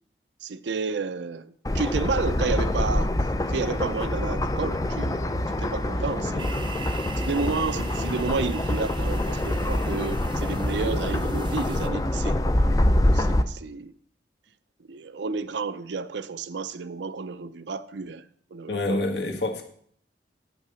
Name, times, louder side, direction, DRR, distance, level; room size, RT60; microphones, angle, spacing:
voice 1, 0.4-3.1 3.5-6.6 6.9-12.4 13.1-13.9 14.9-19.0, right 4 dB, 80° right, 0.6 m, -31 dB
sound 1, 1.6-13.4, left 1 dB, 20° left, 0.5 m, -25 dB
sound 2, 6.4-11.9, right 4 dB, 25° right, 0.6 m, -41 dB
voice 2, 18.7-19.6, left 2 dB, 75° left, 1.5 m, -27 dB
9.2 x 6.0 x 6.8 m
head